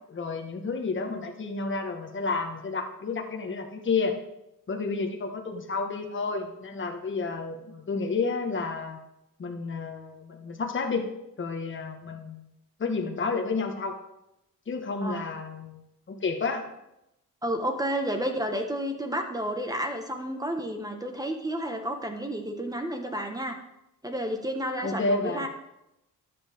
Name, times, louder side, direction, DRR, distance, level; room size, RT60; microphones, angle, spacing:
voice 1, 0.1-4.1 4.7-9.0 9.4-11.1 11.4-12.5 12.8-13.9 14.7-15.8 16.1-16.7 24.8-25.5, left 4 dB, 35° left, 3 dB, 1.5 m, -30 dB
voice 2, 17.4-23.6 24.0-25.5, equal, 10° right, 4 dB, 1.3 m, -31 dB
13.0 x 10.0 x 3.6 m, 0.86 s
cardioid pair, 120°, 35 cm